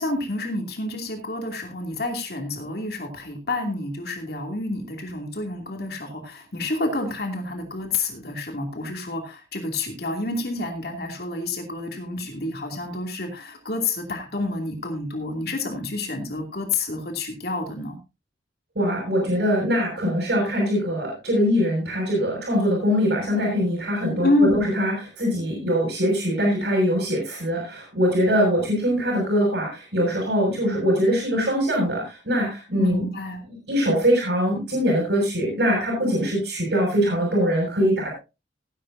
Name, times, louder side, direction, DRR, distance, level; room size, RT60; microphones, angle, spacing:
voice 1, 0.0-18.0 24.2-24.6 32.8-33.4, left 2 dB, 55° left, 3 dB, 2.7 m, -28 dB
voice 2, 18.7-33.0 33.5-38.1, equal, 65° right, -1 dB, 6.7 m, -22 dB
17.5 x 10.5 x 2.7 m, 0.28 s
head